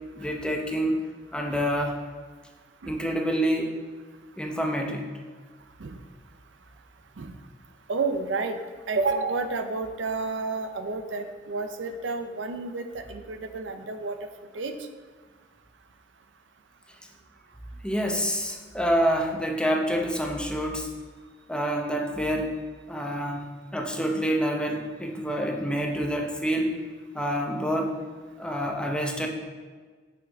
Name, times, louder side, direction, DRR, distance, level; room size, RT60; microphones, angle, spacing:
voice 1, 0.2-1.0 1.3-2.0 2.9-3.7 4.4-5.0 17.8-20.9 21.5-22.5 22.9-23.5 23.7-26.8 27.1-27.9 28.4-29.3, equal, 5° left, 1 dB, 0.7 m, -27 dB
voice 2, 7.9-8.6 8.9-14.2 14.5-14.7, right 3 dB, 85° right, 7 dB, 0.6 m, -30 dB
7.1 x 6.0 x 3.5 m, 1.5 s
head